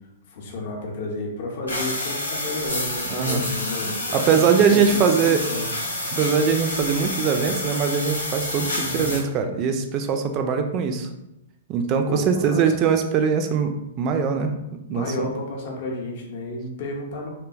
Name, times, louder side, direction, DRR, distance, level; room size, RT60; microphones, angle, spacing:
voice 1, 0.3-4.2 4.7-5.7 8.7-9.1 12.1-12.6 14.9-17.3, left 2 dB, 50° left, 0 dB, 0.6 m, -32 dB
sound 1, 1.7-9.2, left 1 dB, 85° left, 0.7 m, -29 dB
voice 2, 3.1-3.4 4.1-5.4 6.1-11.1 11.7-15.3, right 6 dB, 35° right, 6 dB, 0.3 m, -22 dB
2.7 x 2.2 x 2.5 m, 0.90 s
figure-of-eight pair, 110°, 0 cm